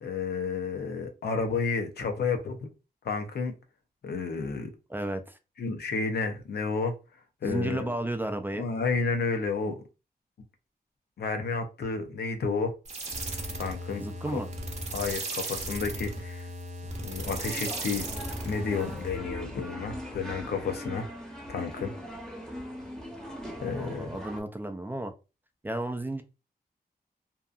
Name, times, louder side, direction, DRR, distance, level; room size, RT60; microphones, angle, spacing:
voice 1, 0.0-2.6 3.0-3.5 4.0-4.7 5.6-6.9 7.4-7.9 8.6-9.8 11.2-12.7 13.5-14.4 14.9-16.5 17.0-18.1 18.5-21.1 21.5-21.9 23.6-24.1, left 4 dB, 90° left, 0.6 m, -31 dB
voice 2, 4.9-5.4 7.4-8.7 14.0-14.5 23.8-25.1 25.6-26.2, right 1 dB, 10° right, 0.3 m, -33 dB
sound 1, 12.8-19.2, right 1 dB, 45° right, 0.6 m, -36 dB
sound 2, 17.2-24.4, equal, 5° left, 0.8 m, -40 dB
2.7 x 2.4 x 2.4 m
wide cardioid pair, 125°, 16 cm